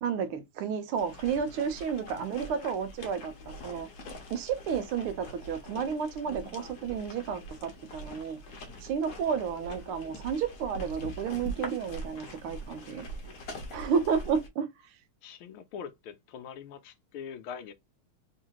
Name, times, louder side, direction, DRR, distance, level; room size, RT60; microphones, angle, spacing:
voice 1, 0.0-3.3 3.6-3.9 4.3-8.4 8.8-13.1 13.7-14.7, right 7 dB, 80° right, 1.6 m, -31 dB
sound 1, 1.0-14.5, equal, 55° left, 1.3 m, -43 dB
voice 2, 15.2-17.7, left 7 dB, 80° left, 1.5 m, -43 dB
3.7 x 3.2 x 2.9 m
omnidirectional pair, 2.4 m